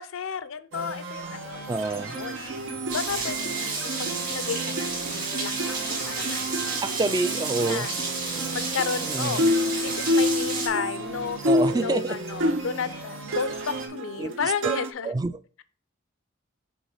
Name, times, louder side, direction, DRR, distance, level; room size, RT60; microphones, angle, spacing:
voice 1, 0.0-1.6 1.9-2.4 2.9-7.0 7.7-7.9 8.5-9.5 9.8-11.4 11.7-15.1, left 6 dB, 90° left, 0.5 m, -33 dB
sound 1, 0.7-13.9, right 3 dB, 85° right, 1.4 m, -38 dB
voice 2, 1.7-2.2 6.8-7.9 8.4-8.6 9.1-9.5 11.4-12.2 14.2-14.8 15.0-15.3, right 3 dB, 20° right, 0.3 m, -27 dB
sound 2, 2.1-13.0 13.3-14.9, left 1 dB, 70° right, 0.6 m, -29 dB
Rain, 2.9-10.7, right 4 dB, 45° right, 2.4 m, -31 dB
6.2 x 4.0 x 3.9 m
head